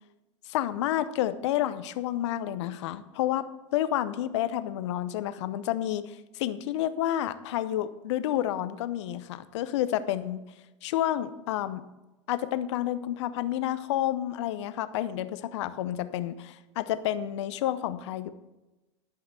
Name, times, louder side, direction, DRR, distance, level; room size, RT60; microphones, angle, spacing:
voice 1, 0.5-3.4 3.7-10.4 10.8-11.8 12.3-18.3, left 12 dB, 75° left, 13 dB, 0.7 m, -30 dB
11.0 x 5.8 x 6.7 m, 1.1 s
hypercardioid pair, 90°, 15 cm